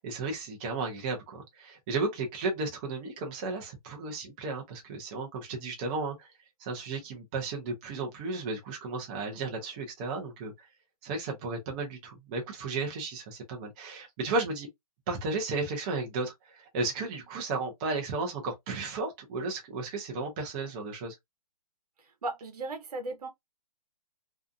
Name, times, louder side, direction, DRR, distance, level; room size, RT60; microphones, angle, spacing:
voice 1, 0.0-6.3 6.6-10.5 11.0-14.7 15.1-21.1, right 3 dB, 15° right, 0.4 m, -34 dB
voice 2, 22.0-23.3, right 2 dB, 85° right, 0.8 m, -36 dB
2.6 x 2.4 x 2.3 m
hypercardioid pair, 160°, 19 cm